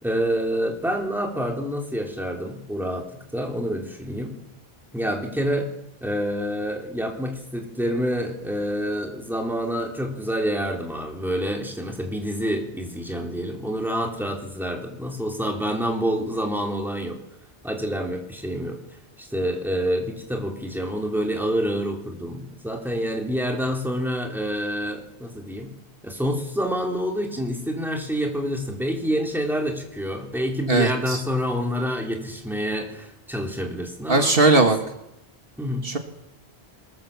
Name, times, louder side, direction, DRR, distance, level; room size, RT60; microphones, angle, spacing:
voice 1, 0.0-4.4 4.9-5.7 6.0-17.2 17.6-18.8 19.2-25.7 26.0-34.3 35.6-35.9, equal, ahead, 1 dB, 3.6 m, -27 dB
voice 2, 30.7-31.2 34.1-34.8 35.8-36.0, right 3 dB, 65° right, 5 dB, 2.2 m, -18 dB
22.0 x 20.5 x 7.4 m, 0.85 s
omnidirectional pair, 1.0 m